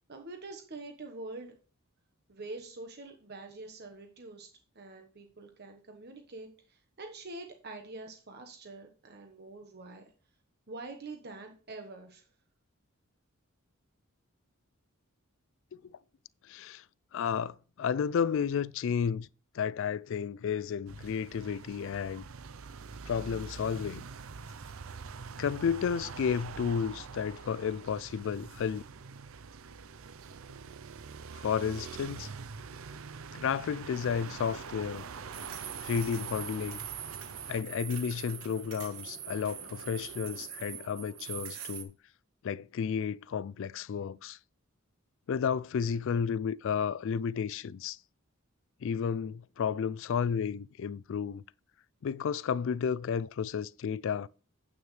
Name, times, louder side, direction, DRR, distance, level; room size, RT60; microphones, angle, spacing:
voice 1, 0.1-1.5 2.3-4.5 4.7-10.1 10.7-12.3, right 2 dB, 50° right, 1.2 m, -45 dB
voice 2, 16.5-16.8 17.1-19.3 19.5-22.3 23.1-24.0 25.4-28.8 31.3-32.3 33.3-35.0 35.8-36.8 37.5-41.9 42.4-44.4 45.3-48.0 48.8-51.4 52.0-54.3, left 7 dB, 60° left, 0.3 m, -32 dB
sound 1, 20.9-37.6, right 5 dB, 70° right, 0.6 m, -45 dB
sound 2, 33.9-41.8, right 8 dB, 90° right, 1.4 m, -43 dB
9.4 x 8.7 x 3.2 m
head